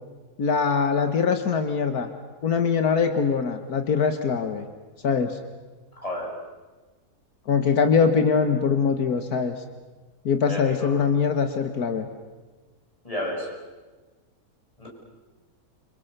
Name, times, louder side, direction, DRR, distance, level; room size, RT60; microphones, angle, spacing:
voice 1, 0.4-2.1 2.4-4.6 5.0-5.4 7.5-9.6 10.3-12.1, left 5 dB, 80° left, 8 dB, 1.9 m, -22 dB
voice 2, 6.0-6.3 10.5-10.9 13.0-13.5 14.8-14.9, left 1 dB, 20° left, -2 dB, 7.6 m, -31 dB
29.0 x 26.5 x 6.8 m, 1.3 s
omnidirectional pair, 1.6 m